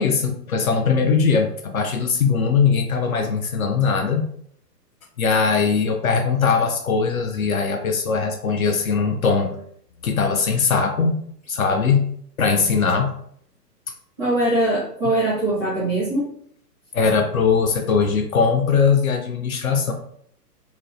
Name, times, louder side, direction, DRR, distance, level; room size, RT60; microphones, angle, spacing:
voice 1, 0.0-4.3 5.2-9.6 10.0-11.2 11.5-12.1 12.4-13.1 16.9-19.9, left 5 dB, 60° left, 5 dB, 0.5 m, -20 dB
voice 2, 14.2-16.3, right 1 dB, 5° left, -13 dB, 0.5 m, -21 dB
2.8 x 2.0 x 2.5 m, 0.65 s
figure-of-eight pair, 125°, 49 cm